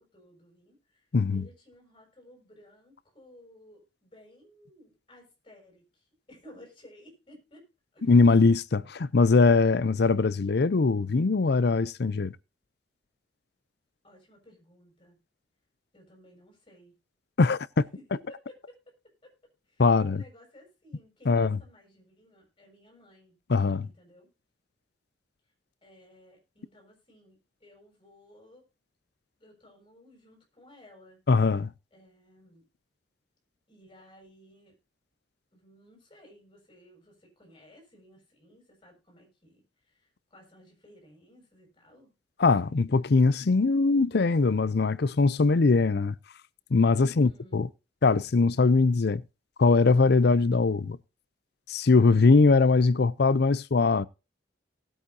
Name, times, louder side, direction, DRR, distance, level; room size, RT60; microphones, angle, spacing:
voice 1, 0.0-8.0 14.0-15.2 15.9-16.9 17.9-19.3 19.6-23.4 23.8-24.3 25.8-28.7 29.4-31.2 31.9-32.6 33.7-34.7 35.5-42.1 47.0-47.6, left 1 dB, 25° left, 6.8 m, -56 dB
voice 2, 1.1-1.5 8.0-12.4 17.4-17.8 19.8-20.2 21.2-21.6 23.5-23.9 31.3-31.7 42.4-46.2 46.7-47.7 48.0-49.2 49.6-51.0 51.7-54.1, left 4 dB, 60° left, 0.5 m, -21 dB
19.0 x 8.6 x 2.7 m
head